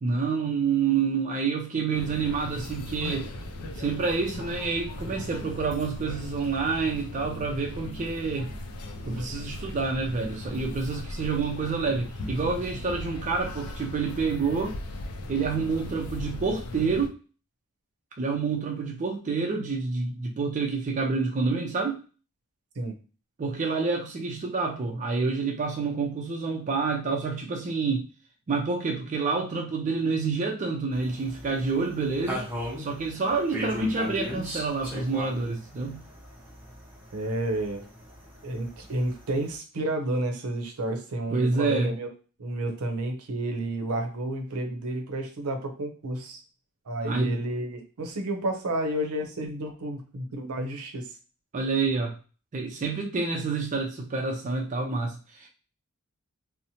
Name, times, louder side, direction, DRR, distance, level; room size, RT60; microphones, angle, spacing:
voice 1, 0.0-3.3 3.8-8.5 9.1-14.8 15.3-17.1 18.2-22.0 23.4-28.1 28.5-32.5 32.8-36.0 41.3-41.9 47.0-47.4 51.5-52.2 52.5-55.5, right 4 dB, 35° right, 0 dB, 0.4 m, -28 dB
sound 1, 1.9-17.1, left 1 dB, 85° left, 0.4 m, -38 dB
sound 2, 30.9-39.6, equal, 10° right, 0.7 m, -39 dB
voice 2, 37.1-37.8 38.4-42.1 42.4-46.4 46.9-51.1, right 1 dB, 75° right, 4 dB, 0.6 m, -31 dB
2.7 x 2.0 x 2.7 m, 0.36 s
head